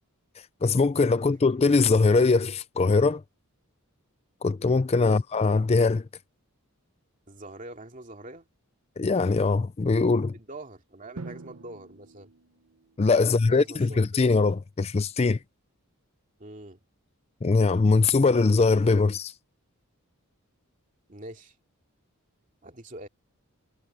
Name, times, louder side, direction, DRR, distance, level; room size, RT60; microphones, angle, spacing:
voice 1, 0.6-3.2 4.4-6.0 9.0-10.3 13.0-15.4 17.4-19.3, left 3 dB, 30° left, 0.4 m, -22 dB
voice 2, 7.3-8.5 10.3-12.3 13.2-14.4 16.4-16.8 21.1-21.6 22.6-23.1, right 1 dB, 35° right, 2.6 m, -44 dB
Drum, 11.2-13.1, right 3 dB, 85° right, 0.9 m, -44 dB
head